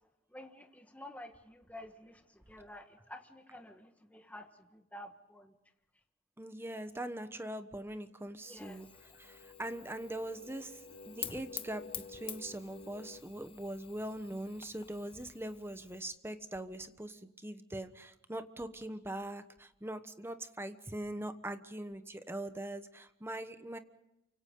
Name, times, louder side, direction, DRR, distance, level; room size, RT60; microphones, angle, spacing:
voice 1, 0.3-5.5 8.5-8.9, left 1 dB, 10° left, 5 dB, 1.5 m, -51 dB
voice 2, 6.4-23.8, right 1 dB, 10° right, 9 dB, 1.1 m, -42 dB
sound 1, 8.4-13.2, left 3 dB, 85° left, 4.4 m, -53 dB
Fire, 8.6-16.0, left 9 dB, 30° left, 1.1 m, -49 dB
29.0 x 25.5 x 3.9 m, 0.87 s
head